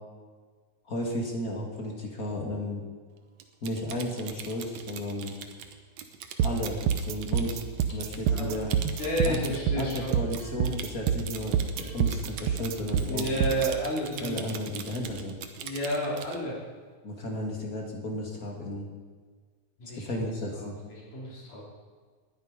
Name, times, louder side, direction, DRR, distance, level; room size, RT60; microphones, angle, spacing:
voice 1, 0.8-2.8 3.6-5.3 6.4-7.6 7.9-8.7 9.2-13.3 14.2-15.4 17.0-18.9 19.9-20.8, left 1 dB, 30° left, 0 dB, 2.7 m, -34 dB
Typing, 3.4-16.4, right 8 dB, 70° right, 2.2 m, -42 dB
sound 1, 6.4-13.7, right 8 dB, 90° right, 1.2 m, -27 dB
voice 2, 8.3-8.6 9.0-10.2 13.1-14.4 15.6-16.6 19.8-20.2 20.6-21.7, equal, 85° left, -5 dB, 5.6 m, -31 dB
Chink clink, 9.0-9.5 10.4-10.9 11.8-12.3 13.0-13.2 14.1-14.3, right 2 dB, 15° right, 2.6 m, -54 dB
20.0 x 11.0 x 5.3 m, 1.5 s
omnidirectional pair, 3.5 m